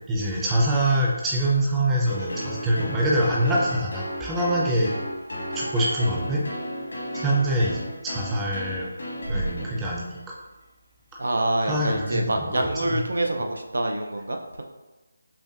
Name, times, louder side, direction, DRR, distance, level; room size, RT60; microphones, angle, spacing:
voice 1, 0.1-4.9 5.5-6.4 7.1-8.9 9.3-10.3 11.6-13.0, right 1 dB, 10° right, -4 dB, 0.6 m, -24 dB
sound 1, 2.0-10.2, equal, 75° left, 1.4 m, -33 dB
voice 2, 11.2-14.6, right 1 dB, 75° right, 3 dB, 0.5 m, -26 dB
5.6 x 2.2 x 2.4 m, 1.1 s
figure-of-eight pair, 160°, 0 cm